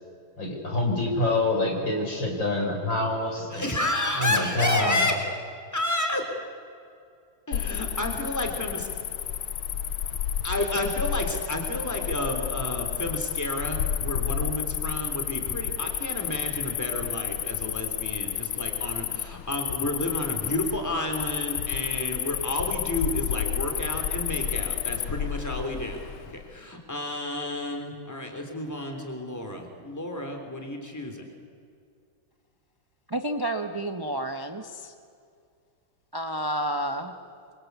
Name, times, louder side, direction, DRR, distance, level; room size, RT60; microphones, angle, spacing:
voice 1, 0.4-3.6 4.2-5.1, left 2 dB, 60° left, 1 dB, 5.9 m, -26 dB
voice 2, 3.5-5.2 5.7-6.2 7.5-8.9 10.4-31.2, left 1 dB, 10° left, 4 dB, 3.6 m, -31 dB
Cricket, 7.5-26.4, left 10 dB, 80° left, 1.7 m, -31 dB
voice 3, 33.1-34.9 36.1-37.1, right 1 dB, 15° right, 6 dB, 0.8 m, -30 dB
27.0 x 25.5 x 8.4 m, 2.3 s
omnidirectional pair, 2.3 m